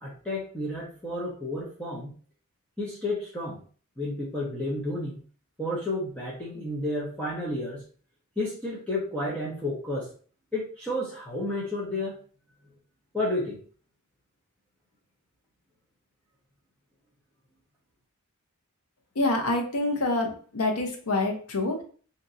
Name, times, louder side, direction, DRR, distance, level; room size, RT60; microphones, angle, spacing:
voice 1, 0.0-2.2 2.8-3.6 4.0-5.2 5.6-7.8 8.4-10.1 10.5-12.2 13.1-13.6, left 1 dB, 5° left, -6 dB, 0.6 m, -31 dB
voice 2, 19.2-21.8, left 2 dB, 85° left, 3 dB, 0.7 m, -26 dB
2.8 x 2.6 x 2.5 m, 0.43 s
head